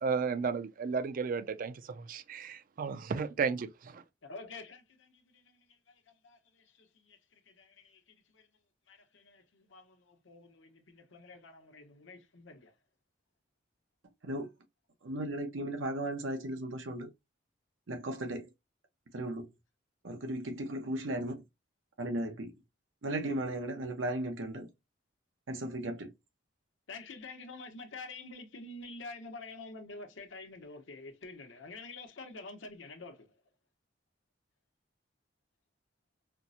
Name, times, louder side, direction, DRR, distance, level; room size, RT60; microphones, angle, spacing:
voice 1, 0.0-4.0, right 5 dB, 45° right, 0.4 m, -34 dB
voice 2, 4.2-8.5 8.9-12.7 26.9-33.4, left 3 dB, 80° left, 0.8 m, -48 dB
voice 3, 15.0-17.1 17.9-18.5 19.1-19.5 20.0-21.4 22.0-22.5 23.0-24.7 25.5-26.1, right 1 dB, 85° right, 0.7 m, -36 dB
4.3 x 2.0 x 2.6 m
head